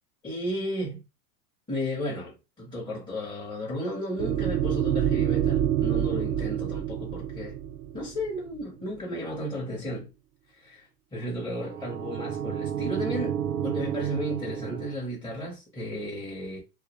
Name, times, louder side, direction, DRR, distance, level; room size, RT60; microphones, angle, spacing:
voice 1, 0.2-1.0 1.7-7.6 7.9-10.1 10.6-16.6, equal, 10° left, 0.6 m, -34 dB
sound 1, 4.2-8.6 11.6-15.0, right 10 dB, 80° right, 0.6 m, -28 dB
2.2 x 2.1 x 2.9 m
supercardioid pair, 130°, 47 cm